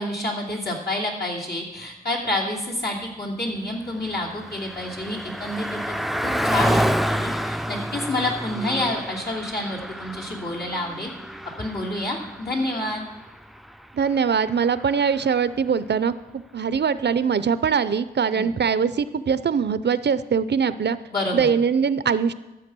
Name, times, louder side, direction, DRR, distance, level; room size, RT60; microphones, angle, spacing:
voice 1, 0.0-5.8 6.2-11.1 11.6-13.0 18.3-18.5 21.1-21.5, left 1 dB, 70° left, -3 dB, 2.9 m, -28 dB
Car passing by, 3.6-15.4, equal, ahead, 0.4 m, -29 dB
voice 2, 13.9-21.0 21.3-22.3, right 6 dB, 90° right, 15 dB, 0.5 m, -22 dB
13.5 x 7.9 x 6.1 m, 1.0 s
wide cardioid pair, 50°, 17 cm